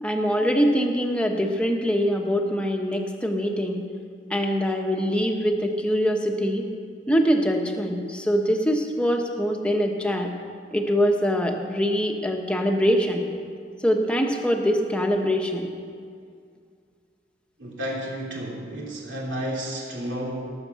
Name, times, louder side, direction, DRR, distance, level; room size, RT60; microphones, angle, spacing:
voice 1, 0.0-3.8 4.3-6.7 7.1-10.3 10.7-13.3 13.8-15.7, equal, 5° left, 2 dB, 1.2 m, -23 dB
voice 2, 17.6-20.5, right 1 dB, 75° right, -3 dB, 3.2 m, -31 dB
18.5 x 7.0 x 6.9 m, 2.2 s
head